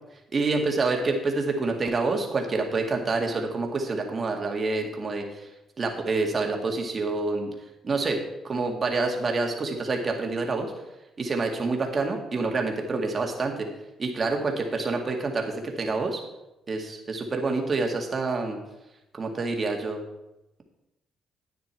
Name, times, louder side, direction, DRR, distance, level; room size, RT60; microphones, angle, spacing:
voice 1, 0.3-5.5 5.8-7.5 7.8-8.2 8.4-10.7 11.2-13.7 14.0-16.2 16.7-18.6 19.1-20.0, right 3 dB, 35° right, 2 dB, 2.1 m, -27 dB
10.5 x 9.1 x 4.6 m, 0.94 s
cardioid pair, 90°, 0 cm